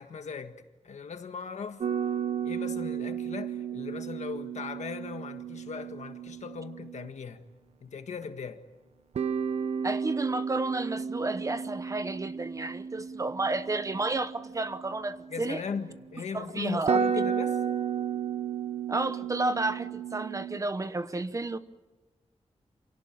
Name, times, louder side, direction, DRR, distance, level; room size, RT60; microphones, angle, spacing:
voice 1, 0.0-1.8 2.4-7.4 7.8-8.6 15.3-17.6, left 5 dB, 80° left, 1.7 m, -38 dB
sound 1, 1.8-7.1 9.2-15.8 16.5-16.6 16.9-20.6, right 7 dB, 65° right, 0.9 m, -33 dB
voice 2, 9.8-15.6 16.3-17.0 18.9-21.6, right 2 dB, 30° right, 0.9 m, -31 dB
28.0 x 17.5 x 8.9 m
wide cardioid pair, 165°, 12 cm